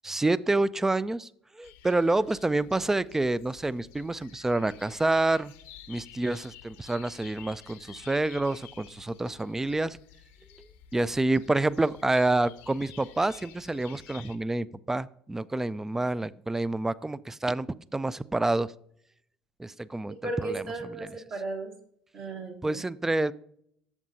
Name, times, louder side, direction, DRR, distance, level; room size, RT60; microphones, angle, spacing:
voice 1, 0.0-1.3 1.6-5.5 5.9-10.0 10.9-17.7 17.9-18.7 19.6-20.6 21.0-21.1 22.6-23.3, right 2 dB, 10° right, 19 dB, 0.3 m, -28 dB
sound 1, 1.6-14.4, left 11 dB, 65° left, 0.7 m, -51 dB
voice 2, 20.2-21.7 22.1-22.8, right 2 dB, 50° right, 0 dB, 1.4 m, -35 dB
11.5 x 7.5 x 2.7 m, 0.69 s
figure-of-eight pair, 60°, 4 cm